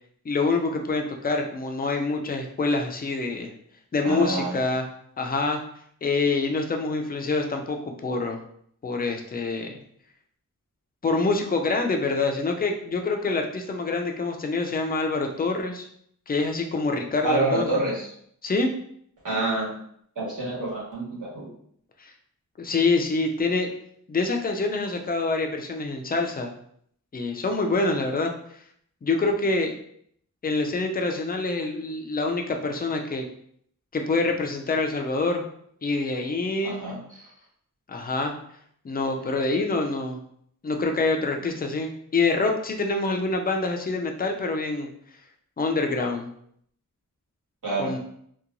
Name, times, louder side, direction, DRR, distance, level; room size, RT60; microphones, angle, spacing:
voice 1, 0.3-3.5 3.9-4.9 5.2-5.6 6.0-8.4 8.8-9.8 11.0-15.9 16.3-17.8 18.4-18.7 22.0-22.1 22.6-23.7 24.1-26.5 27.1-28.3 29.0-29.8 30.4-33.2 33.9-35.4 35.8-36.8 37.9-38.3 38.8-40.2 40.6-44.9 45.6-46.3 47.8-48.0, left 3 dB, 30° left, 3 dB, 0.4 m, -26 dB
voice 2, 4.0-4.6 17.2-18.1 19.2-19.7 20.1-21.5 36.6-37.3 47.6-47.9, right 2 dB, 70° right, -7 dB, 1.4 m, -27 dB
2.8 x 2.2 x 2.5 m, 0.67 s
wide cardioid pair, 100°, 32 cm